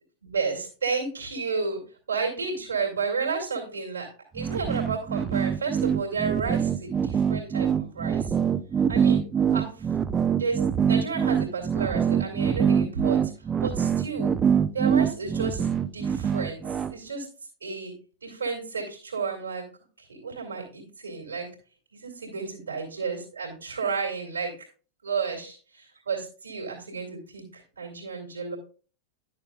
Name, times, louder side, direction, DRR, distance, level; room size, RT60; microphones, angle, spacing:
voice 1, 0.2-1.8 2.1-4.1 4.3-8.3 8.9-9.2 9.5-9.9 10.4-13.3 13.6-14.3 14.7-16.6 16.9-17.3 17.6-17.9 18.2-19.6 20.0-21.5 21.9-24.5 25.0-28.6, right 5 dB, 70° right, 0 dB, 2.3 m, -32 dB
sound 1, 4.4-16.9, right 7 dB, 20° right, 0.4 m, -24 dB
11.0 x 6.5 x 2.3 m, 0.38 s
figure-of-eight pair, 90°, 0 cm